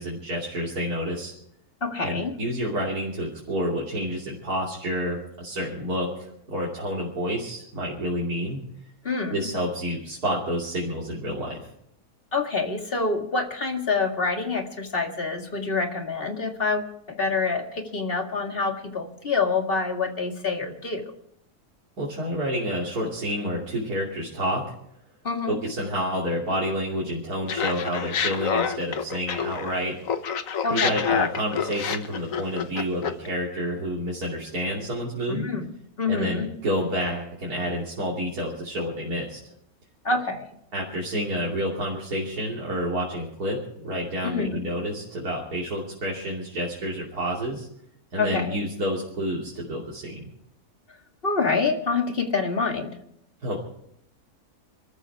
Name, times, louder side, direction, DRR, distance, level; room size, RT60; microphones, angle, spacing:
voice 1, 0.0-1.3 2.0-8.6 9.3-11.7 22.0-24.6 25.5-30.0 30.7-35.5 36.1-39.4 40.7-43.6 43.8-47.7 48.1-50.2 53.4-53.6, equal, 80° right, -4 dB, 3.5 m, -29 dB
voice 2, 1.8-2.4 9.0-9.5 12.3-21.1 25.2-25.6 30.6-31.1 35.3-36.5 40.0-40.5 44.2-44.6 48.2-48.6 51.2-53.0, left 4 dB, 40° left, 3 dB, 2.3 m, -27 dB
Laughter, 27.5-29.8 30.1-33.3, left 7 dB, 65° left, 1.4 m, -27 dB
27.5 x 14.0 x 3.6 m, 0.73 s
omnidirectional pair, 1.6 m